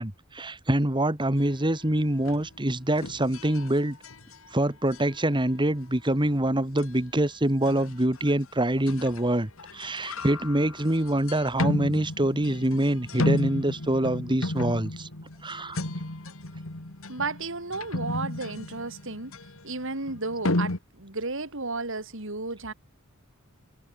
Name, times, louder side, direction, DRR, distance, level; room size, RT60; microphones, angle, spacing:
voice 1, 0.0-4.0 4.5-15.1 15.4-15.8, right 1 dB, 20° right, 2.2 m, -25 dB
sound 1, 2.2-2.6 3.0-4.5 4.9-5.2 6.8-6.9 7.6-8.3 8.9-9.3 9.6-20.8, left 1 dB, 65° left, 2.4 m, -33 dB
voice 2, 17.1-19.4 19.6-22.7, right 3 dB, 65° right, 4.0 m, -33 dB
head